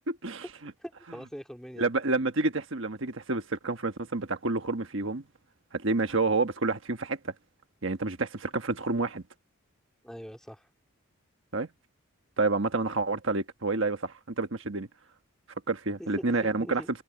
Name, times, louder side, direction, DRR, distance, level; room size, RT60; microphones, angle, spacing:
voice 1, 0.1-0.7 1.8-5.2 5.7-7.3 7.8-9.2 11.5-11.7 12.4-14.9 15.7-16.8, right 3 dB, 60° right, 1.4 m, -29 dB
voice 2, 0.8-1.9 10.0-10.7 16.0-16.9, equal, ahead, 2.8 m, -42 dB
head